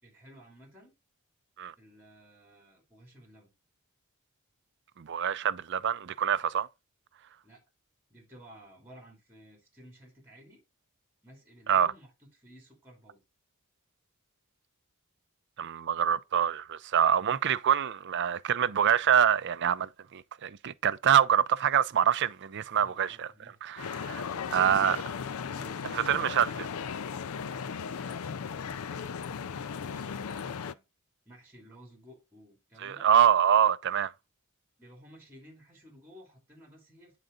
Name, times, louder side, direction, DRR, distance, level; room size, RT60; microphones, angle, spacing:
voice 1, 0.0-0.9 1.8-3.5 7.4-7.6 8.1-10.6 11.2-13.2 22.8-23.6 24.3-25.1 25.4-26.5 27.5-30.8 31.3-33.1 34.8-37.2, equal, 10° right, 2.6 m, -54 dB
voice 2, 5.0-6.7 11.7-11.9 15.6-23.3 23.6-24.2 24.5-25.0 25.9-26.5 32.8-34.1, right 9 dB, 55° right, 0.5 m, -25 dB
sound 1, 23.8-30.7, left 6 dB, 80° left, 0.4 m, -36 dB
8.9 x 3.9 x 3.8 m
head